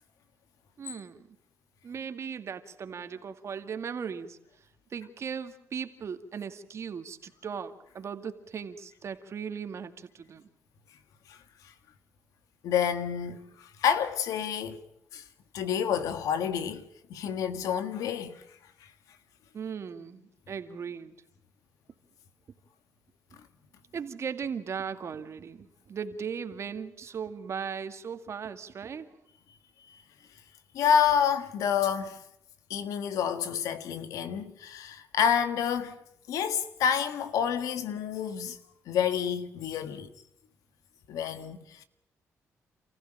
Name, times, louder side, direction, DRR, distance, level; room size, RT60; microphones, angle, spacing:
voice 1, 0.8-1.3 1.8-4.4 4.9-10.5 19.5-21.2 23.9-29.2, right 6 dB, 55° right, 2.2 m, -38 dB
voice 2, 12.6-14.8 15.1-15.2 15.5-16.8 17.1-18.4 18.8-18.9 29.9-30.0 30.7-32.2 32.7-36.0 36.3-38.6 38.9-40.1 41.1-41.8, left 8 dB, 90° left, 1.7 m, -28 dB
28.5 x 15.5 x 9.0 m
cardioid pair, 85°, 6 cm